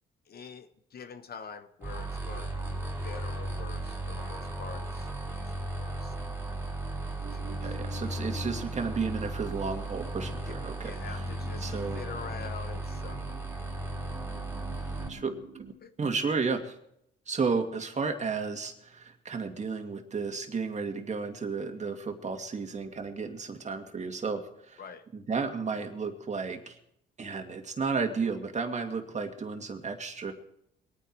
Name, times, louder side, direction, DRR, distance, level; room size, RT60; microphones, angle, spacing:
voice 1, 0.3-6.2 7.3-7.8 8.1-8.2 10.4-13.2 15.8-15.9 24.8-25.0, left 6 dB, 50° left, 9 dB, 1.1 m, -46 dB
sound 1, 1.8-15.1, right 1 dB, 10° right, 3.6 m, -36 dB
sound 2, 7.2-15.7, right 5 dB, 55° right, 2.5 m, -48 dB
voice 2, 7.6-11.3 11.6-12.0 15.1-15.3 15.6-15.7 16.0-16.8 17.3-24.8 25.1-26.8 27.2-30.3, right 4 dB, 35° right, 5 dB, 2.3 m, -33 dB
23.0 x 9.4 x 4.7 m, 0.74 s
cardioid pair, 90°, 20 cm